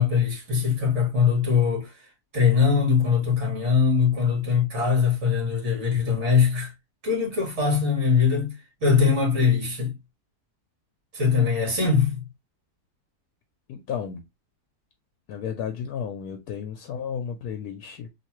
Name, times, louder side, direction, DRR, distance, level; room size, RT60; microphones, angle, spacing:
voice 1, 0.0-1.9 2.3-6.7 7.0-9.9 11.1-12.2, left 6 dB, 50° right, 1.8 m, -22 dB
voice 2, 13.7-14.2 15.3-18.1, left 7 dB, 75° left, 1.1 m, -33 dB
3.2 x 2.8 x 2.9 m
omnidirectional pair, 1.6 m